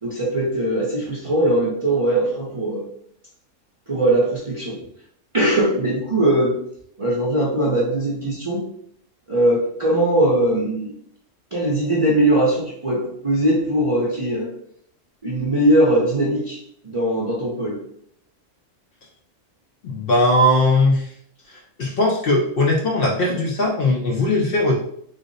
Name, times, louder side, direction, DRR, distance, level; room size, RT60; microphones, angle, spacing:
voice 1, 0.0-2.9 3.9-4.8 5.3-6.6 7.0-8.7 9.3-10.9 11.5-14.5 15.2-17.8, right 1 dB, 40° right, -6 dB, 0.5 m, -20 dB
voice 2, 19.8-21.1 21.5-24.7, left 1 dB, 60° left, 0 dB, 0.6 m, -19 dB
3.3 x 2.0 x 3.8 m, 0.68 s
omnidirectional pair, 1.3 m